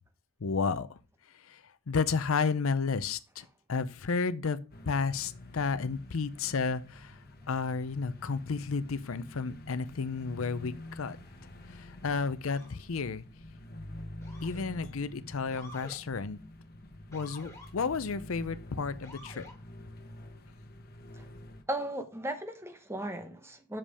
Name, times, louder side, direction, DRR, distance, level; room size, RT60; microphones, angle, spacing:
voice 1, 0.4-1.0 1.5-1.6 1.9-4.6 4.9-7.2 7.5-11.2 11.7-13.2 14.4-16.4 17.1-19.4, left 5 dB, 75° left, 0.6 m, -32 dB
sound 1, 4.7-21.6, left 1 dB, 45° left, 1.2 m, -48 dB
Motor vehicle (road) / Siren, 12.4-12.8 14.2-14.8 15.5-16.0 17.1-17.7 19.0-19.6, left 2 dB, 15° left, 2.0 m, -50 dB
voice 2, 21.7-23.8, right 1 dB, 10° right, 0.9 m, -36 dB
7.2 x 5.3 x 4.9 m
head